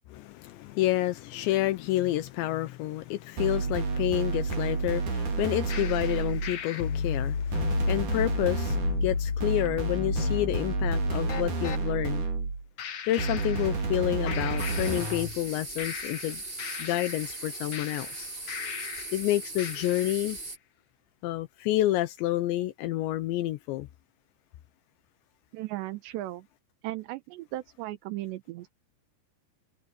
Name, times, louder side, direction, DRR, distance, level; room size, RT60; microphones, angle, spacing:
voice 1, 0.1-12.3 13.1-16.4 16.8-18.3 19.1-20.4 21.2-23.9, left 15 dB, 80° left, 3.1 m, -29 dB
sound 1, 3.4-6.6 7.5-12.7 13.2-15.4, right 4 dB, 45° right, 4.7 m, -30 dB
sound 2, 5.7-11.8 12.8-14.0 14.3-15.5 15.8-19.2 19.6-20.2, left 6 dB, 55° left, 2.4 m, -33 dB
sound 3, 14.6-20.6, right 2 dB, 15° right, 1.9 m, -39 dB
voice 2, 25.5-26.5 26.8-28.7, right 16 dB, 80° right, 3.2 m, -36 dB
omnidirectional pair, 5.2 m